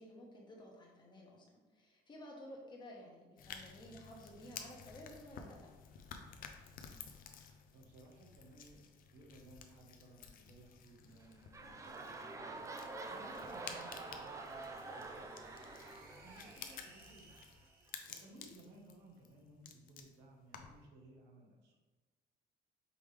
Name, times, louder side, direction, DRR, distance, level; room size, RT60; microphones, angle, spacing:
voice 1, 0.0-1.5 1.7-5.7 18.2-18.4, equal, 25° left, -1 dB, 1.2 m, -53 dB
sound 1, 3.4-20.9, left 7 dB, 55° left, 0.5 m, -54 dB
voice 2, 6.7-17.4 18.1-21.8, right 1 dB, 90° right, 0 dB, 1.0 m, -60 dB
sound 2, 11.1-17.4 18.1-18.2, right 3 dB, 20° right, 0.4 m, -47 dB
sound 3, 11.5-18.9, right 3 dB, 65° right, 0.9 m, -63 dB
5.2 x 3.1 x 3.2 m, 1.2 s
cardioid pair, 110°, 17 cm